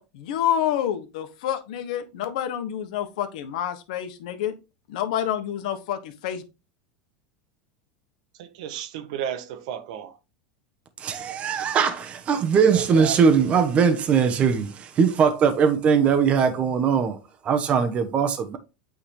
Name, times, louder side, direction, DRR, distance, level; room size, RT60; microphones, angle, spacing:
voice 1, 0.0-4.5 4.9-6.4, left 10 dB, 70° left, 1.3 m, -28 dB
voice 2, 8.4-10.1 12.7-13.2, right 9 dB, 70° right, 1.2 m, -33 dB
voice 3, 11.0-17.2 17.4-18.6, right 6 dB, 30° right, 1.1 m, -20 dB
8.7 x 3.8 x 3.3 m
supercardioid pair, 135°, 4 cm